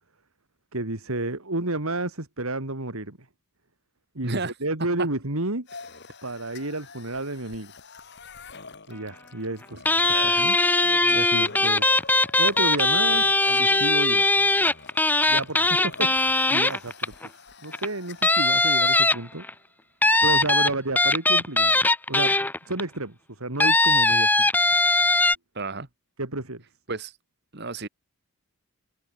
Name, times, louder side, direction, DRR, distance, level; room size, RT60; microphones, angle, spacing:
voice 1, 0.7-3.2 4.1-5.7 6.2-7.7 8.9-10.6 11.1-11.9 12.4-13.3 13.6-14.3 15.3-17.3 17.6-19.4 20.2-21.8 22.1-22.4 22.7-24.5 26.2-26.6, right 2 dB, 75° right, 3.0 m, -31 dB
voice 2, 4.2-4.5 10.0-10.5 25.6-25.9 26.9-27.1 27.5-27.9, right 3 dB, 50° right, 1.9 m, -32 dB
sound 1, 5.7-19.0, left 4 dB, 50° left, 2.7 m, -45 dB
sound 2, 9.9-17.3 17.7-17.9 18.2-19.5 20.0-22.8 23.6-25.4, left 2 dB, 10° left, 1.1 m, -20 dB
head